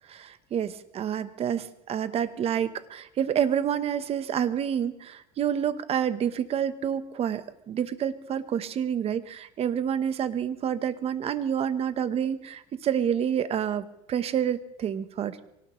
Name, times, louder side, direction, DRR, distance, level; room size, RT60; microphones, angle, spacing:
voice 1, 0.1-15.4, right 9 dB, 35° right, 12 dB, 1.1 m, -28 dB
24.0 x 18.5 x 3.2 m, 0.81 s
supercardioid pair, 125°, 17 cm